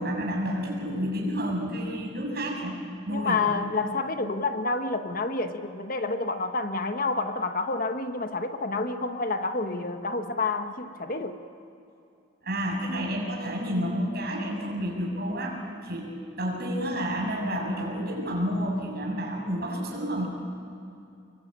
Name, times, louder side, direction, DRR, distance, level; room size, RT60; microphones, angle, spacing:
voice 1, 0.0-2.8 3.1-3.4 12.4-20.3, equal, 50° right, -1 dB, 6.9 m, -30 dB
voice 2, 3.1-11.4, left 3 dB, 45° left, 7 dB, 1.2 m, -29 dB
27.0 x 23.0 x 8.9 m, 2.6 s
head